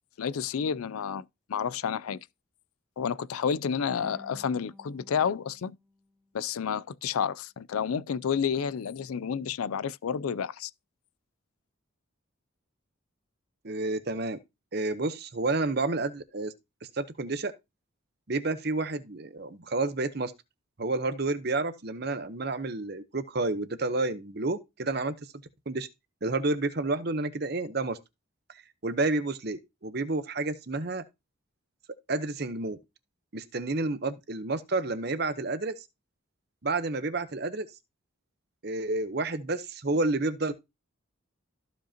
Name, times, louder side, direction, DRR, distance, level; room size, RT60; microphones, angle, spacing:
voice 1, 0.2-2.2 3.0-5.8 6.3-10.7, left 7 dB, 85° left, 0.4 m, -30 dB
sound 1, 4.0-7.1, left 1 dB, 5° left, 1.1 m, -54 dB
voice 2, 13.6-14.4 14.7-16.5 16.8-17.5 18.3-20.3 20.8-25.1 25.7-25.9 26.2-28.0 28.5-31.0 32.1-32.8 33.3-35.8 36.6-37.7 38.6-40.5, right 2 dB, 50° right, 0.8 m, -30 dB
14.5 x 5.2 x 2.8 m
head